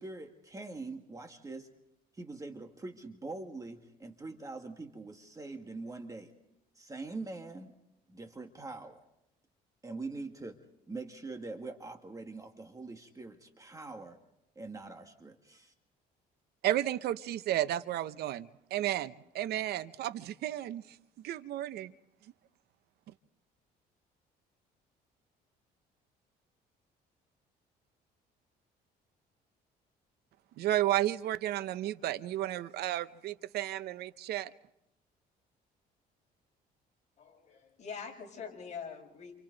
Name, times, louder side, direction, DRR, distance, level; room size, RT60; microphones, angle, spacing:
voice 1, 0.0-1.7 2.1-6.3 6.8-7.8 8.1-9.0 9.8-10.6 10.9-14.2 14.5-15.7, right 3 dB, 20° right, 1.8 m, -43 dB
voice 2, 16.6-20.8 21.2-21.9 30.6-34.5, right 13 dB, 70° right, 0.7 m, -32 dB
voice 3, 37.2-39.4, left 6 dB, 45° left, 7.5 m, -44 dB
29.0 x 28.5 x 4.0 m
cardioid pair, 110°, 17 cm